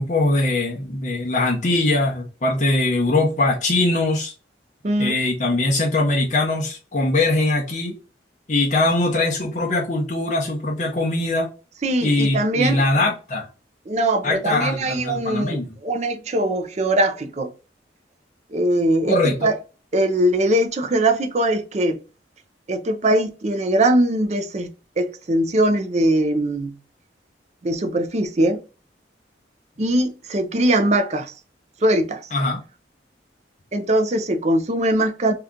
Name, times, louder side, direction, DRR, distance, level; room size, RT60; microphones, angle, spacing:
voice 1, 0.0-4.3 5.0-7.9 8.5-11.5 12.0-13.5 14.2-15.7 19.1-19.5 32.3-32.6, left 2 dB, 40° left, 0.7 m, -21 dB
voice 2, 4.8-5.2 11.8-12.8 13.9-17.5 18.5-19.5 19.9-22.0 22.7-26.7 27.6-28.6 29.8-31.3 31.8-32.3 33.7-35.3, right 1 dB, 40° right, 0.5 m, -21 dB
2.8 x 2.4 x 3.5 m
head